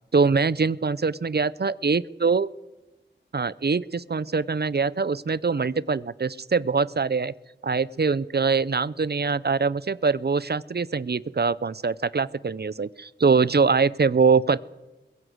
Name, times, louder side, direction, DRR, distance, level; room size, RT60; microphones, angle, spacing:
voice 1, 0.1-2.5 3.3-7.3 7.6-14.6, right 5 dB, 60° right, 19 dB, 0.6 m, -23 dB
22.0 x 16.0 x 7.9 m, 1.1 s
wide cardioid pair, 60°, 19 cm